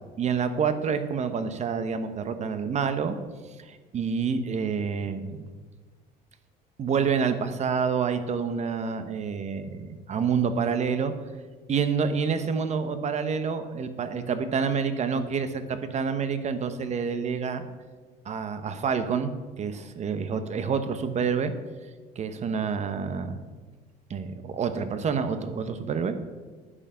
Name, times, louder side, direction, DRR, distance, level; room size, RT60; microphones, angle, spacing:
voice 1, 0.2-3.2 3.6-5.5 6.8-11.1 11.7-17.6 18.2-19.3 19.6-21.5 22.2-23.4 24.1-26.1, right 6 dB, 40° right, 10 dB, 1.0 m, -28 dB
9.8 x 7.6 x 5.7 m, 1.4 s
cardioid pair, 120°, 18 cm